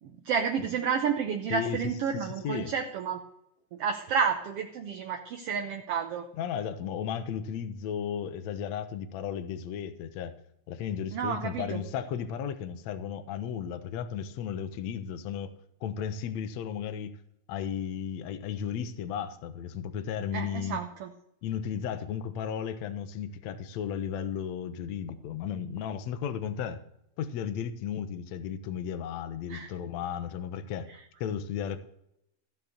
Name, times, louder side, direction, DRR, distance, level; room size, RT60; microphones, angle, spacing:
voice 1, 0.0-3.2 3.7-6.2 11.1-11.8 20.3-21.1 29.5-29.7, right 6 dB, 70° right, 4 dB, 1.5 m, -30 dB
voice 2, 1.5-1.8 2.4-2.7 6.3-10.3 10.7-15.5 15.8-17.2 17.5-20.8 21.4-26.8 27.2-30.9 31.2-31.8, left 8 dB, 70° left, 9 dB, 1.9 m, -34 dB
15.0 x 5.9 x 7.8 m, 0.77 s
omnidirectional pair, 3.7 m